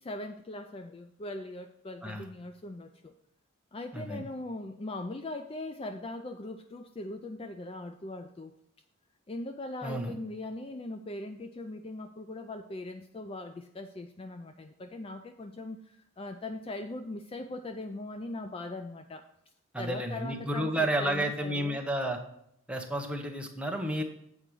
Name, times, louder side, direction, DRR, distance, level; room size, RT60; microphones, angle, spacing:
voice 1, 0.0-3.1 3.7-8.5 9.3-19.3 19.8-21.8, left 2 dB, 25° left, 7 dB, 0.4 m, -40 dB
voice 2, 3.9-4.3 9.8-10.1 19.7-22.2 22.7-24.0, right 1 dB, 5° right, 3 dB, 0.8 m, -31 dB
8.2 x 5.0 x 6.0 m, 0.73 s
head